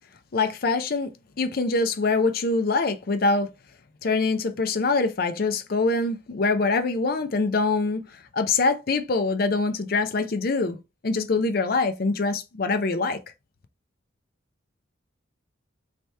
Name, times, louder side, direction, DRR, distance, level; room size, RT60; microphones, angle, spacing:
voice 1, 0.3-1.1 1.4-3.5 4.0-8.1 8.3-10.8 11.0-13.2, left 3 dB, 50° left, 0.5 m, -24 dB
3.3 x 2.8 x 4.5 m
head